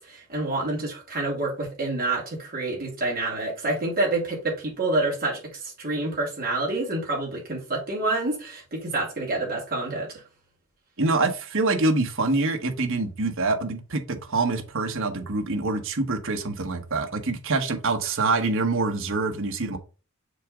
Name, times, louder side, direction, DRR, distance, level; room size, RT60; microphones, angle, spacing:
voice 1, 0.0-10.1, right 2 dB, 45° right, 2.8 m, -28 dB
voice 2, 11.0-19.8, right 3 dB, 65° right, 1.2 m, -25 dB
6.7 x 3.6 x 5.0 m
head